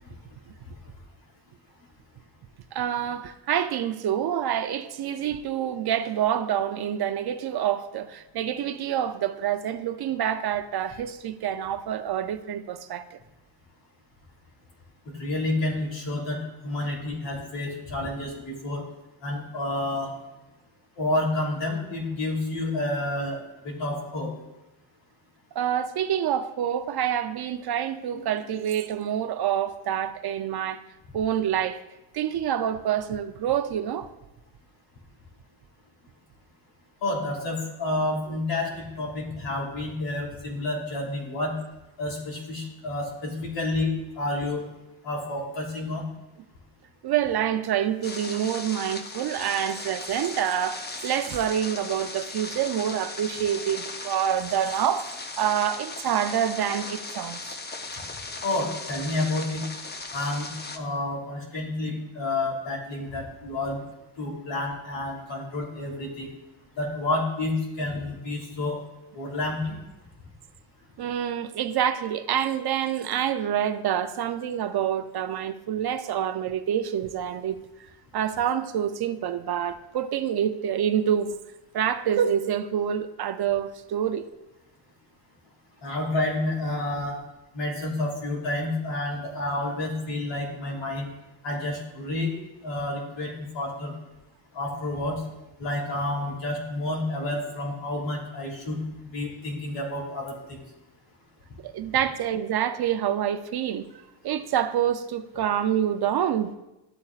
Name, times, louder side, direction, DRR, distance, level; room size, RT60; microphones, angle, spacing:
voice 1, 2.7-13.2 25.5-30.8 31.1-31.8 32.1-34.1 38.3-38.4 47.0-55.1 55.4-57.6 71.0-81.4 81.7-84.3 101.6-103.9 104.2-106.5, right 9 dB, 50° right, 0.6 m, -27 dB
voice 2, 15.2-18.8 19.2-20.1 21.0-24.3 37.0-41.5 42.0-44.6 45.0-46.0 58.4-59.6 60.1-63.8 64.2-66.3 66.8-68.8 69.1-69.8 85.8-87.2 87.5-91.1 91.4-92.3 92.6-93.9 94.5-95.2 95.6-98.8 99.1-100.6, left 2 dB, 60° left, 3.4 m, -29 dB
sound 1, 48.0-60.8, left 3 dB, 20° left, 0.7 m, -37 dB
12.5 x 8.5 x 2.5 m
cardioid pair, 100°, 49 cm